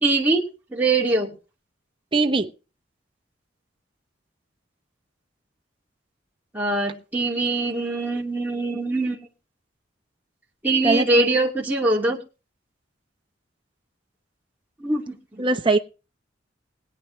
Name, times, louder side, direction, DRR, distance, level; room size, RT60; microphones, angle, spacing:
voice 1, 0.0-1.3 6.5-9.2 10.6-12.2 14.8-15.4, right 2 dB, 10° right, -4 dB, 2.4 m, -23 dB
voice 2, 2.1-2.5 10.8-11.1 15.4-15.8, right 3 dB, 25° right, 5 dB, 0.8 m, -20 dB
21.0 x 9.1 x 3.2 m, 0.33 s
head